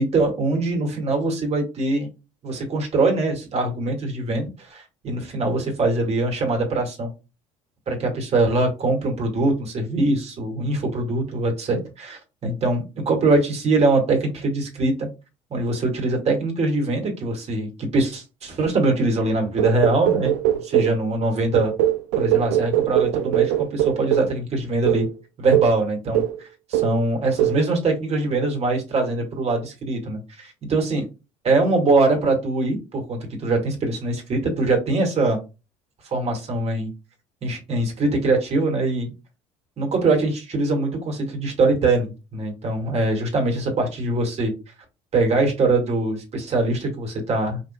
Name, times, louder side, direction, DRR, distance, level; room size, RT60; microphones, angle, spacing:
voice 1, 0.0-2.1 2.4-7.1 7.9-15.1 15.5-20.3 20.6-21.7 22.2-25.1 25.4-26.2 26.8-31.1 31.4-35.4 36.0-36.9 37.4-39.1 39.8-44.5 45.1-47.6, right 2 dB, 40° right, 2 dB, 2.3 m, -22 dB
sound 1, 19.6-21.0 21.5-24.4 24.9-25.1 25.5-25.8 26.1-26.4 26.7-27.0 27.4-27.6, right 12 dB, 80° right, 0.6 m, -21 dB
5.2 x 3.9 x 2.4 m, 0.28 s
supercardioid pair, 80°, 16 cm